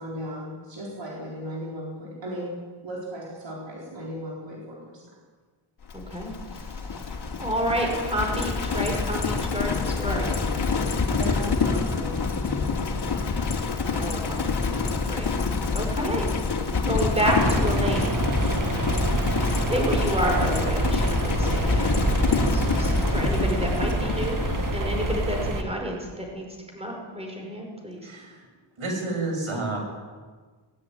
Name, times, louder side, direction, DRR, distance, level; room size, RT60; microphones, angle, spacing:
voice 1, 0.0-5.2 11.1-13.0, equal, 65° right, -3 dB, 4.5 m, -36 dB
Livestock farm animals working animals, 5.9-25.5, left 4 dB, 55° left, 2.7 m, -27 dB
voice 2, 5.9-6.3 7.4-10.4 13.9-14.4 14.7-15.3 15.7-16.3 16.9-18.2 19.7-21.9 22.2-24.4 24.7-26.5 26.7-28.1, right 1 dB, 10° right, 1 dB, 5.5 m, -29 dB
sound 1, 17.2-25.6, right 2 dB, 40° right, 2.1 m, -27 dB
voice 3, 28.8-29.8, right 2 dB, 85° right, 2 dB, 7.4 m, -29 dB
21.0 x 19.5 x 9.5 m, 1.5 s
wide cardioid pair, 170°, 47 cm